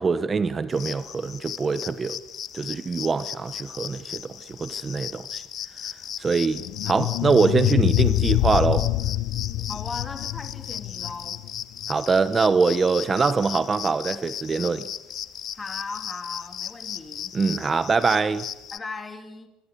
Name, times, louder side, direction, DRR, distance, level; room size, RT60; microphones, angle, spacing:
voice 1, 0.0-2.2 2.5-5.4 6.2-8.9 11.9-14.9 17.3-18.5, right 4 dB, 20° right, 1.0 m, -23 dB
sound 1, 0.7-18.8, left 9 dB, 40° left, 1.2 m, -37 dB
sound 2, 6.5-11.6, left 16 dB, 65° left, 0.8 m, -25 dB
voice 2, 9.7-11.4 15.5-17.3 18.7-19.5, left 4 dB, 15° left, 2.6 m, -37 dB
26.5 x 22.5 x 8.4 m
cardioid pair, 150°, 0 cm